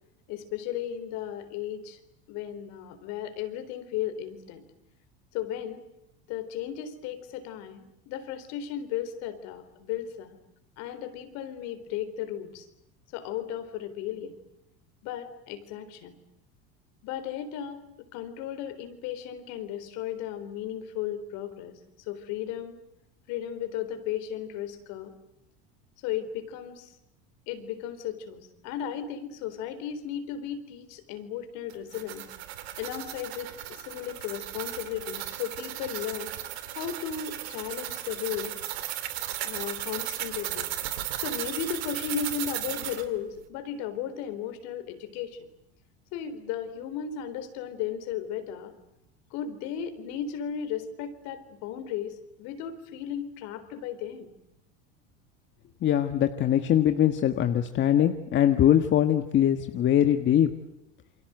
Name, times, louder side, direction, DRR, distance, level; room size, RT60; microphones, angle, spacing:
voice 1, 0.3-2.0 2.3-4.6 5.3-5.8 6.3-10.4 10.8-12.7 13.1-14.3 15.0-16.1 17.0-21.8 22.1-22.8 23.3-25.1 26.0-26.9 27.5-32.3 32.8-36.3 36.7-38.5 39.4-40.7 41.2-45.5 46.1-48.7 49.3-54.3, left 9 dB, 65° left, 10 dB, 4.1 m, -35 dB
sound 1, 31.7-43.1, right 13 dB, 85° right, 2.8 m, -36 dB
voice 2, 55.8-60.5, left 10 dB, 40° left, 8 dB, 1.5 m, -22 dB
28.5 x 24.0 x 7.9 m, 0.82 s
supercardioid pair, 120°, 31 cm